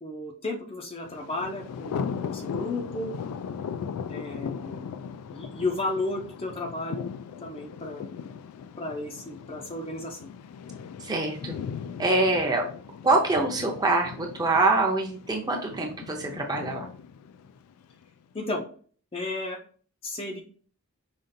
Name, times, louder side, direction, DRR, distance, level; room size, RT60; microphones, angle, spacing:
voice 1, 0.0-3.1 4.1-4.8 5.3-7.1 7.4-8.1 8.8-10.3 18.3-18.6 19.1-19.6 20.0-20.4, left 2 dB, 25° left, 1 dB, 0.5 m, -33 dB
Thunder, 1.1-18.0, left 6 dB, 90° left, 0.3 m, -38 dB
voice 2, 11.0-11.6 12.0-12.6 13.0-16.9, right 2 dB, 15° right, 1 dB, 0.6 m, -25 dB
5.1 x 2.4 x 2.6 m, 0.44 s
head